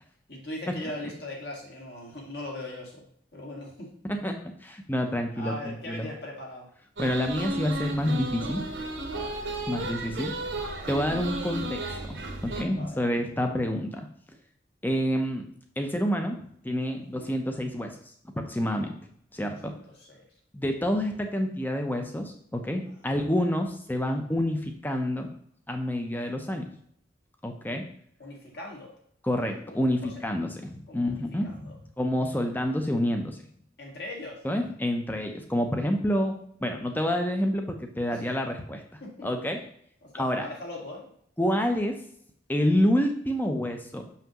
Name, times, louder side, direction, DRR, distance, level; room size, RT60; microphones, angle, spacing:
voice 1, 0.3-3.1 3.3-3.9 5.3-6.7 9.1-9.3 9.9-10.3 12.7-13.0 17.0-17.3 19.4-20.2 22.9-23.2 28.2-28.9 29.7-30.2 30.9-31.7 33.8-34.4 38.1-38.3 39.0-39.3 40.0-41.1, left 1 dB, 55° left, -2 dB, 2.0 m, -40 dB
voice 2, 4.6-6.1 7.0-8.7 9.7-10.3 10.9-14.0 14.8-15.4 15.8-18.0 18.4-18.9 19.3-19.7 20.5-25.3 25.7-26.6 27.4-27.8 29.2-33.4 34.4-36.3 36.6-38.8 39.2-39.6 40.1-40.4 41.4-42.0 42.5-44.0, equal, 10° left, 4 dB, 0.7 m, -28 dB
sound 1, 7.0-12.6, right 1 dB, 65° right, 1.1 m, -34 dB
6.3 x 5.7 x 3.0 m, 0.66 s
head